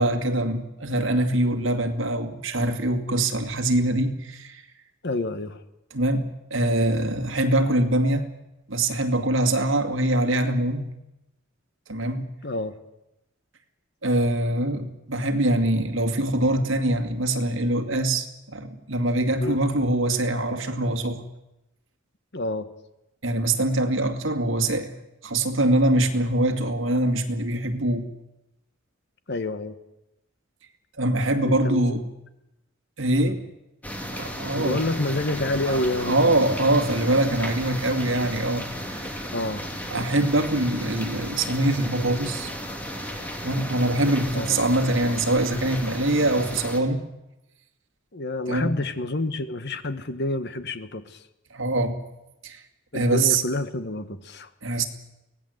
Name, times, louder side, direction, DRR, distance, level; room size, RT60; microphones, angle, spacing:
voice 1, 0.0-4.6 5.9-8.3 8.7-10.9 11.9-12.3 14.0-21.2 23.2-25.0 25.2-28.1 31.0-32.0 33.0-33.4 34.1-34.8 35.7-39.1 39.9-42.5 43.4-47.0 48.5-48.7 51.5-52.0 52.4-52.6 52.9-53.4 54.6-54.8, right 1 dB, 70° right, 2.3 m, -23 dB
voice 2, 5.0-5.6 12.4-12.8 19.4-19.6 22.3-22.7 29.3-29.7 31.4-32.0 33.2-33.3 34.6-36.5 39.3-39.7 44.3-44.6 48.1-51.2 52.9-54.5, left 2 dB, 55° left, 1.4 m, -28 dB
sound 1, 33.8-46.8, equal, 10° left, 2.8 m, -34 dB
24.0 x 17.5 x 8.0 m
head